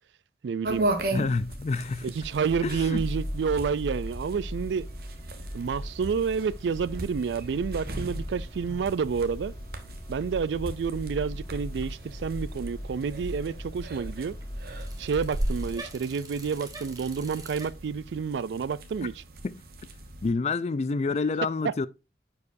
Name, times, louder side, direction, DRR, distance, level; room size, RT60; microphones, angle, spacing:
voice 1, 0.4-0.9 2.0-4.8 5.5-9.5 10.1-14.4 15.0-19.2 21.6-21.7, right 6 dB, 85° right, 0.4 m, -29 dB
sound 1, 0.6-20.3, right 1 dB, 55° right, 1.0 m, -38 dB
voice 2, 1.1-2.1 2.6-3.0 19.4-19.6 20.2-21.9, left 4 dB, 40° left, 0.4 m, -28 dB
sound 2, 2.2-15.8, equal, 20° left, 1.8 m, -38 dB
Bicycle, 8.3-17.7, right 2 dB, 20° right, 1.1 m, -49 dB
9.6 x 4.7 x 2.6 m
head